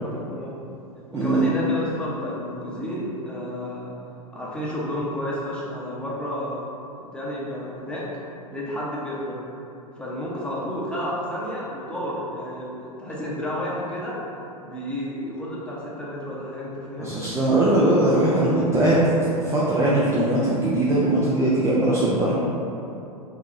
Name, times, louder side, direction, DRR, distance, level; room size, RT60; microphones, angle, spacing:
voice 1, 0.0-0.5 1.1-3.9 4.3-6.6 7.1-8.1 8.5-9.4 9.9-14.2 14.6-17.1, equal, 5° left, -7 dB, 0.8 m, -31 dB
voice 2, 1.1-1.5 17.0-19.1 19.4-22.3, right 1 dB, 15° right, -7 dB, 0.5 m, -20 dB
4.8 x 2.9 x 2.6 m, 2.8 s
figure-of-eight pair, 95°, 19 cm